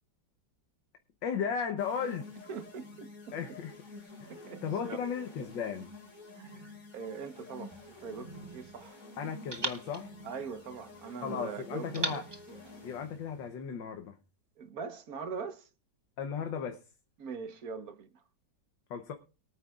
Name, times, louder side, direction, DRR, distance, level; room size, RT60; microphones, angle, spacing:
voice 1, 1.2-2.3 3.3-3.8 4.2-4.3 4.6-5.9 9.2-10.1 11.2-12.2 12.8-14.1 16.2-16.8 18.9-19.1, left 7 dB, 85° left, 1.7 m, -35 dB
sound 1, 1.8-13.3, left 1 dB, 45° left, 3.9 m, -49 dB
voice 2, 2.5-3.6 4.3-5.0 6.4-9.0 10.2-12.6 14.6-15.7 17.2-18.2, right 5 dB, 55° right, 1.5 m, -42 dB
sound 2, 7.7-8.9 9.5-11.1 11.9-13.5, right 3 dB, 30° right, 0.5 m, -41 dB
22.5 x 9.0 x 2.4 m
omnidirectional pair, 1.9 m